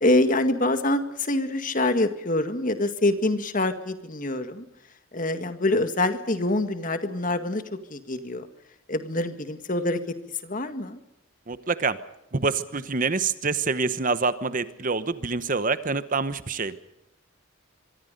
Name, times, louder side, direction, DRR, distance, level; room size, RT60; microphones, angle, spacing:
voice 1, 0.0-4.6 5.1-7.6 7.9-8.5 8.9-10.0 10.4-11.0, left 2 dB, 40° left, 9 dB, 1.9 m, -25 dB
voice 2, 11.5-12.0 12.3-16.7, right 4 dB, 40° right, 13 dB, 1.0 m, -26 dB
25.0 x 23.5 x 5.3 m, 0.87 s
head